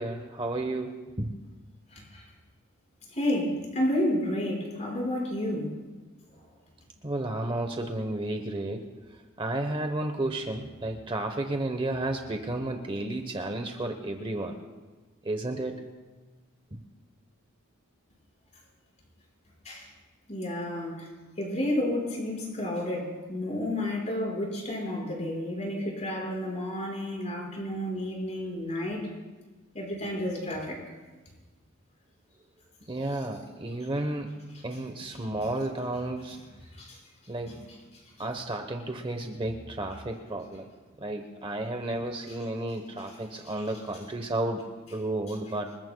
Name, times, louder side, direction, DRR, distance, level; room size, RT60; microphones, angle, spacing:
voice 1, 0.0-1.4 7.0-8.9 9.4-14.6 15.2-15.7 32.9-36.4 37.3-37.6 38.2-40.7 41.0-45.8, right 2 dB, 25° right, 5 dB, 0.9 m, -32 dB
voice 2, 1.9-2.2 3.1-5.8 19.7-19.9 20.3-21.1 21.4-29.0 29.7-30.8 36.8-37.0, left 1 dB, 35° left, -2 dB, 5.2 m, -31 dB
27.5 x 20.5 x 2.3 m, 1.3 s
head